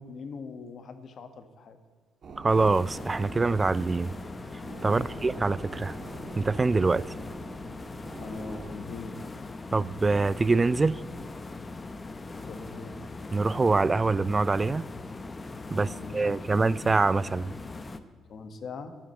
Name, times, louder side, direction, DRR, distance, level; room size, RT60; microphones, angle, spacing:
voice 1, 0.0-1.8 4.8-5.2 8.2-9.2 12.3-13.0 15.7-16.7 18.3-19.0, left 4 dB, 50° left, 1.4 m, -42 dB
sound 1, 2.2-8.7, right 4 dB, 45° right, 1.8 m, -45 dB
voice 2, 2.4-4.1 4.8-5.9 6.4-7.0 9.7-11.0 13.3-14.8 15.7-17.5, right 3 dB, 20° right, 0.3 m, -24 dB
sound 2, 2.5-18.0, left 3 dB, 25° left, 0.8 m, -40 dB
12.0 x 10.0 x 7.7 m
cardioid pair, 115°, 0 cm